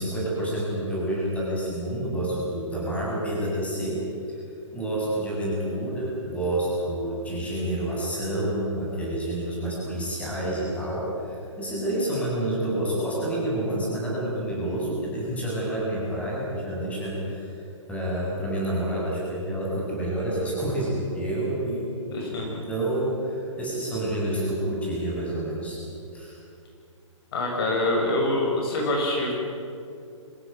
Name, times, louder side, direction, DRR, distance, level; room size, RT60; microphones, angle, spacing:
voice 1, 0.0-4.0 4.3-4.4 4.7-17.5 17.9-21.9 22.7-25.8 26.1-26.4, right 1 dB, 10° left, -4 dB, 7.9 m, -28 dB
voice 2, 22.1-22.6 27.3-29.3, left 1 dB, 50° left, -1 dB, 6.7 m, -25 dB
25.5 x 17.0 x 9.5 m, 2.5 s
figure-of-eight pair, 125°, 17 cm